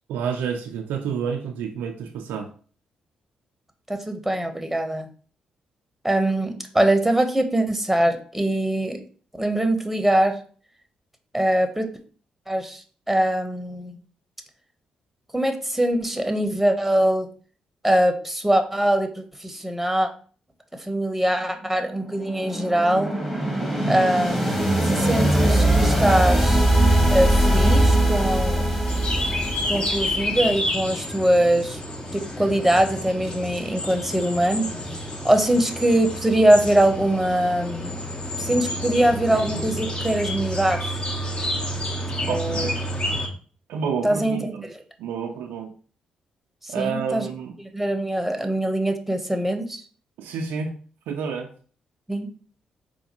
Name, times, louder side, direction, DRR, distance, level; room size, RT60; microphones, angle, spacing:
voice 1, 0.1-2.5 42.3-42.8 43.7-44.7 45.0-45.7 46.7-47.6 50.2-50.8 51.1-51.5, right 6 dB, 75° right, 4 dB, 0.4 m, -29 dB
voice 2, 3.9-5.1 6.0-9.0 9.3-10.4 11.3-11.9 12.5-14.0 15.3-17.3 17.8-20.1 20.8-23.1 23.9-26.7 27.1-28.6 29.6-31.8 32.1-34.7 35.2-38.0 38.4-41.0 42.3-42.7 44.0-44.4 44.6-44.7 46.6-47.3 47.6-49.8 52.1-52.3, right 1 dB, 5° right, 6 dB, 0.8 m, -22 dB
sound 1, 21.7-30.6, right 1 dB, 10° left, 1.2 m, -21 dB
sound 2, 28.9-43.3, equal, 30° left, 0.8 m, -29 dB
4.2 x 2.2 x 2.9 m, 0.42 s
hypercardioid pair, 45°, 3 cm